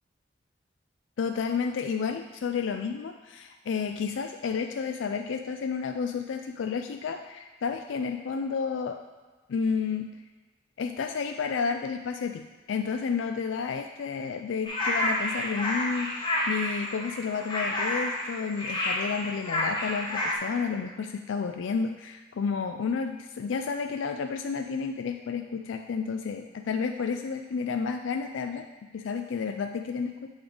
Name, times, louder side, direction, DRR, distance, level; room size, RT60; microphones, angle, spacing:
voice 1, 1.2-9.0 9.5-10.1 10.8-28.7 28.9-30.3, left 5 dB, 85° left, 6 dB, 0.4 m, -31 dB
sound 1, 14.6-20.3, left 1 dB, 25° left, 1.0 m, -30 dB
8.0 x 3.6 x 5.0 m, 1.3 s
head